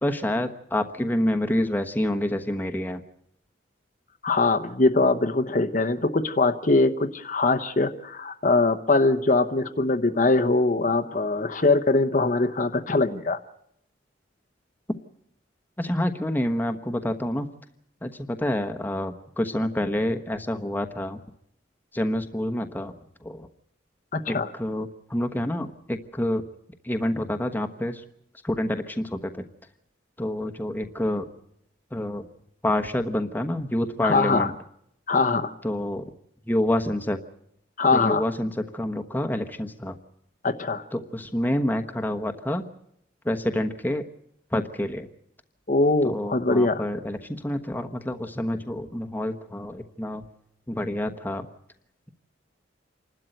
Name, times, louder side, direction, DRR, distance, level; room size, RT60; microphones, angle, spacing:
voice 1, 0.0-3.0 15.8-17.5 18.0-18.1 18.4-21.2 21.9-22.9 23.2-23.5 24.3-26.4 26.8-28.0 28.4-29.3 30.2-31.3 31.9-32.2 32.6-34.5 35.6-36.1 36.5-37.2 37.9-40.0 40.9-42.7 43.2-44.0 44.5-45.1 46.0-50.2 50.7-51.5, left 1 dB, 10° left, 5 dB, 1.1 m, -27 dB
voice 2, 4.2-13.4 24.1-24.5 34.0-34.5 35.1-35.5 37.8-38.2 40.4-40.8 45.7-46.9, left 3 dB, 40° left, 9 dB, 0.9 m, -22 dB
28.0 x 12.5 x 9.1 m, 0.74 s
head